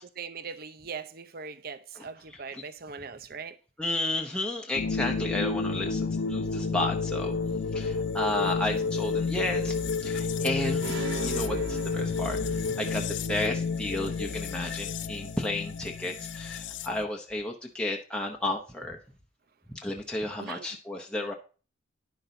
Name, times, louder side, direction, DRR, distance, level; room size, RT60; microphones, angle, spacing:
voice 1, 0.0-3.5 20.4-20.7, right 5 dB, 50° right, 0.8 m, -40 dB
voice 2, 2.3-2.6 3.8-7.3 7.7-9.7 10.0-19.0 19.8-21.3, left 2 dB, 5° left, 0.9 m, -32 dB
sound 1, 4.7-17.0, left 4 dB, 70° left, 0.6 m, -30 dB
sound 2, 10.8-12.8, right 4 dB, 90° right, 0.6 m, -38 dB
10.5 x 6.2 x 3.9 m
head